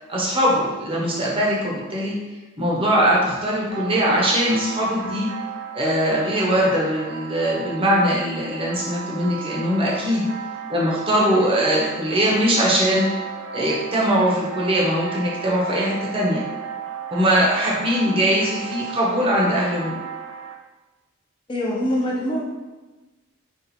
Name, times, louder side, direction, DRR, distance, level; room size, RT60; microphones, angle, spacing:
voice 1, 0.1-2.2 2.6-5.3 5.7-10.3 10.7-13.1 13.5-16.4 17.1-20.0, equal, 25° right, -5 dB, 0.7 m, -21 dB
sound 1, 3.7-20.5, right 7 dB, 65° right, 0.4 m, -34 dB
voice 2, 21.5-22.4, equal, 25° left, -3 dB, 0.6 m, -23 dB
2.6 x 2.4 x 4.1 m, 1.2 s
head